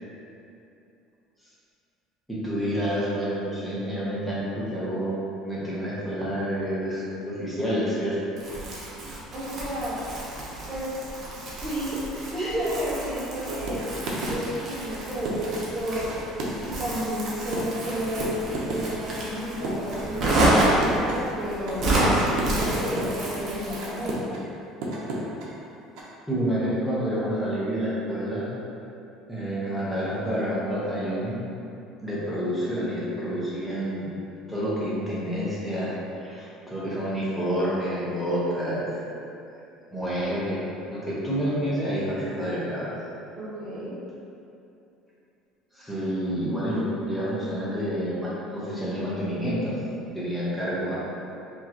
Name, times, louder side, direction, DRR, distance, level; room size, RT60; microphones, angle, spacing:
voice 1, 2.3-8.2 26.3-28.5 29.3-31.4 32.0-34.1 34.5-39.0 39.9-42.9 45.7-49.8 50.1-50.9, equal, 5° left, -9 dB, 0.9 m, -28 dB
Crumpling crinkling, 8.4-24.2, right 1 dB, 35° right, 0.8 m, -29 dB
voice 2, 9.3-10.0 10.7-11.1 11.6-12.0 12.3-13.8 14.3-16.2 16.6-24.4 43.4-43.9, equal, 15° right, -11 dB, 1.3 m, -31 dB
sound 1, 13.7-14.4 15.0-15.6 16.1-16.9 17.2-18.8 19.3-20.0 20.5-21.2 21.7-23.3 23.8-24.4 24.8-25.5 26.0-26.1, right 2 dB, 65° right, 0.7 m, -32 dB
4.6 x 3.0 x 2.9 m, 2.7 s
cardioid pair, 170°, 0 cm